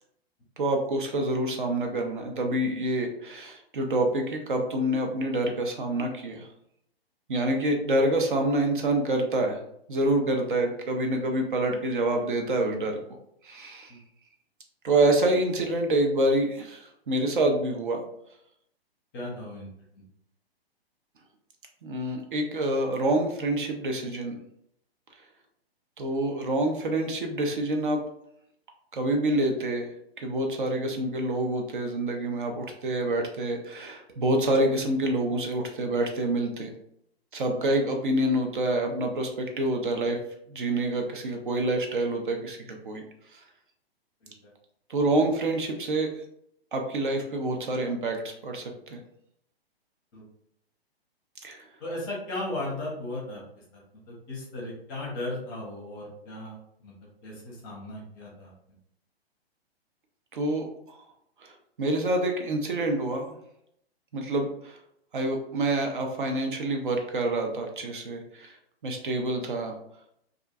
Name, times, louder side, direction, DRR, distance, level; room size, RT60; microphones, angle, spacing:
voice 1, 0.6-6.5 7.3-9.6 9.9-12.9 13.4-13.9 14.8-18.0 21.8-24.4 26.0-28.0 28.9-29.9 30.2-36.7 37.3-40.2 40.5-43.0 43.3-43.4 44.9-46.1 46.7-49.0 51.4-51.6 60.3-61.0 61.4-61.5 61.8-63.4 64.1-64.8 65.1-68.6 68.8-69.7, right 1 dB, 55° right, 3 dB, 0.5 m, -27 dB
voice 2, 19.1-19.7 19.9-20.0 44.2-44.3 50.1-50.2 51.8-53.6 54.1-56.6 56.8-56.9 57.2-58.5, left 1 dB, 20° left, -4 dB, 0.7 m, -36 dB
2.4 x 2.1 x 2.5 m, 0.72 s
figure-of-eight pair, 120°, 31 cm